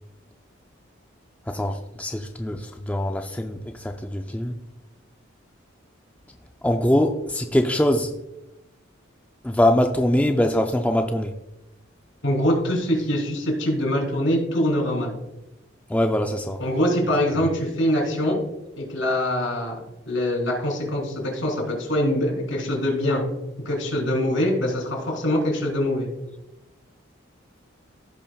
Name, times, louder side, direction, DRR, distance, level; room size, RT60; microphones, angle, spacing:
voice 1, 1.5-4.6 6.6-8.1 9.4-11.3 15.9-16.6 17.3-17.4, left 1 dB, 5° left, 5 dB, 0.3 m, -23 dB
voice 2, 12.2-15.2 16.6-18.4 18.8-19.8 20.1-23.2 23.6-26.1, left 1 dB, 80° left, 1 dB, 3.1 m, -23 dB
15.5 x 5.4 x 2.3 m, 0.92 s
head